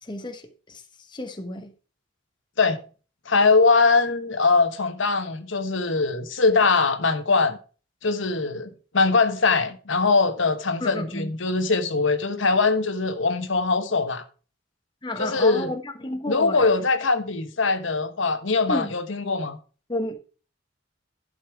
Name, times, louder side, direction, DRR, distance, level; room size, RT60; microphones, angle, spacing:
voice 1, 0.0-0.8 1.1-1.7 10.8-11.3 15.0-16.7 18.7-18.9 19.9-20.2, left 1 dB, 25° left, 1.1 m, -31 dB
voice 2, 3.3-7.6 8.0-14.2 15.2-15.7 16.3-19.6, left 4 dB, 75° left, 1.2 m, -22 dB
11.5 x 5.3 x 4.7 m
head